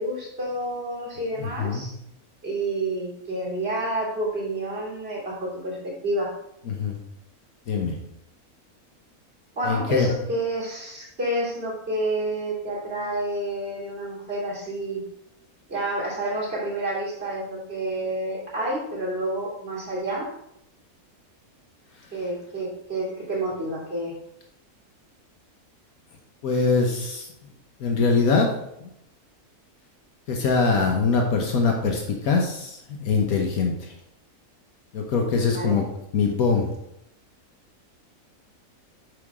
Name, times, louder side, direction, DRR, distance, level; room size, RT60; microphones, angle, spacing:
voice 1, 0.0-1.9 2.4-5.8 6.0-6.3 9.5-15.0 15.7-20.3 22.1-24.1 35.5-35.8, right 1 dB, 40° right, -6 dB, 3.1 m, -29 dB
voice 2, 1.4-1.8 6.7-7.0 7.7-7.9 9.6-10.1 26.4-27.3 27.8-28.5 30.3-33.9 34.9-35.8 36.1-36.7, left 4 dB, 70° left, 2 dB, 1.4 m, -23 dB
8.0 x 5.8 x 3.6 m, 0.79 s
omnidirectional pair, 1.6 m